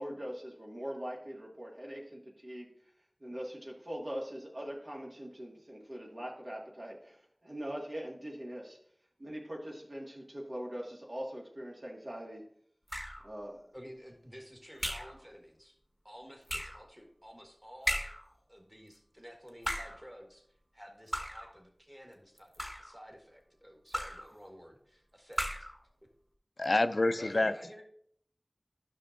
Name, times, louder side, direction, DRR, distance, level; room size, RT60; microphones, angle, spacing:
voice 1, 0.0-2.7 3.2-8.8 9.2-12.4 13.2-13.6, equal, 65° right, -2 dB, 1.9 m, -42 dB
sound 1, 12.9-13.3 14.8-15.2 16.5-16.8 17.9-18.3 19.5-20.0 21.1-21.5 22.4-23.0 23.9-24.3 25.3-25.8, equal, 10° left, 1.0 m, -36 dB
voice 2, 13.7-15.8 16.0-18.0 18.5-20.4 20.7-25.5 27.2-27.8, equal, 10° right, 1 dB, 1.7 m, -52 dB
voice 3, 26.6-27.5, left 2 dB, 80° left, 11 dB, 0.4 m, -27 dB
12.0 x 6.0 x 2.6 m, 0.64 s
wide cardioid pair, 45°, 0 cm